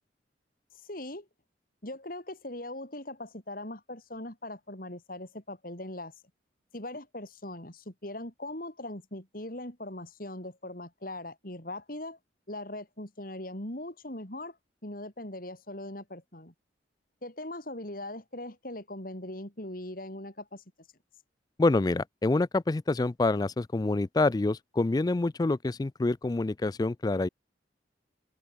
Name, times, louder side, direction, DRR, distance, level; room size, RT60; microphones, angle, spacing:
voice 1, 0.8-1.3 1.8-6.1 6.7-12.2 12.5-14.6 14.8-16.5 17.2-20.6, left 1 dB, 50° left, 4.6 m, -40 dB
voice 2, 21.6-27.3, left 2 dB, 20° left, 0.3 m, -27 dB
open air
head